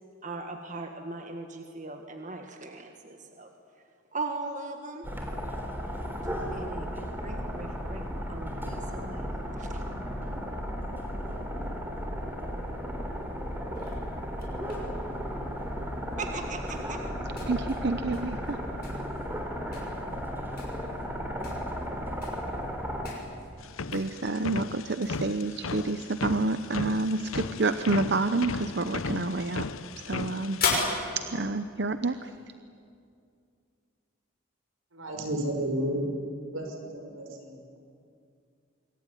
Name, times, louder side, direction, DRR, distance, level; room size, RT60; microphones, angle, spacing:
voice 1, 0.2-3.5 4.1-5.1 6.5-9.3 9.6-9.8 16.2-17.0, right 3 dB, 35° right, 5 dB, 1.7 m, -39 dB
sound 1, 5.0-23.1, equal, 10° right, 3.5 m, -34 dB
sound 2, 13.7-32.5, left 4 dB, 45° left, 6.2 m, -40 dB
voice 2, 17.5-18.6 23.9-29.7 30.0-30.6 31.2-32.3, right 3 dB, 55° right, 10 dB, 0.8 m, -29 dB
sound 3, 23.6-30.8, left 4 dB, 85° left, 0.9 m, -36 dB
voice 3, 34.9-36.0 36.5-37.8, right 1 dB, 80° right, 2 dB, 5.9 m, -32 dB
26.5 x 23.0 x 10.0 m, 2.4 s
head